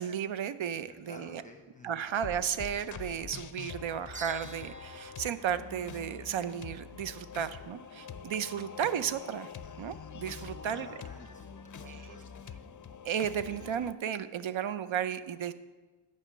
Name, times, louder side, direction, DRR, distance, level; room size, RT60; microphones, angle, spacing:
voice 1, 0.0-1.4 1.8-9.5 9.8-10.9 11.8-12.1 13.0-15.5, right 8 dB, 65° right, 12 dB, 0.6 m, -34 dB
voice 2, 0.7-2.0 10.3-12.2, left 2 dB, 15° left, 2 dB, 0.9 m, -52 dB
sound 1, 2.1-13.9, left 6 dB, 40° left, 0.5 m, -45 dB
sound 2, 4.1-6.6, right 3 dB, 15° right, 0.4 m, -50 dB
9.8 x 5.6 x 7.5 m, 1.3 s
wide cardioid pair, 130°, 50 cm